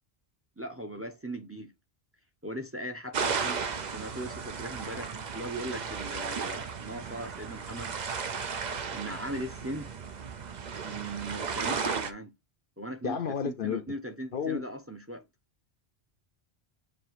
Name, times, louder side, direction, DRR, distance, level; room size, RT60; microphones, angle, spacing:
voice 1, 0.6-1.7 2.4-7.9 8.9-9.9 10.8-12.3 12.8-15.2, right 1 dB, 15° right, 0.8 m, -39 dB
sound 1, 3.1-12.1, right 5 dB, 45° right, 0.8 m, -35 dB
voice 2, 13.0-13.8 14.3-14.6, left 7 dB, 60° left, 0.7 m, -31 dB
7.4 x 2.8 x 4.6 m
omnidirectional pair, 1.1 m